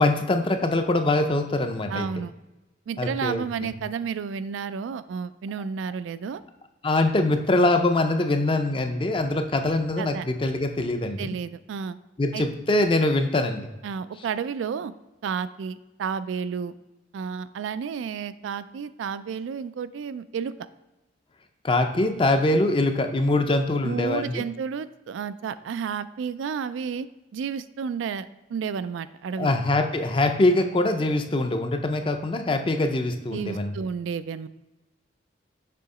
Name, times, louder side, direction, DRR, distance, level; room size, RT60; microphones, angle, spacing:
voice 1, 0.0-2.1 3.0-3.7 6.8-11.4 12.2-13.7 21.6-24.4 29.4-33.7, left 2 dB, 30° left, 6 dB, 0.5 m, -23 dB
voice 2, 1.9-2.3 2.9-6.4 10.0-10.3 11.2-12.0 12.3-12.5 13.8-14.9 15.2-16.7 17.1-20.7 23.8-29.6 33.3-34.5, right 6 dB, 90° right, 14 dB, 0.3 m, -31 dB
6.8 x 2.9 x 4.8 m, 1.0 s
head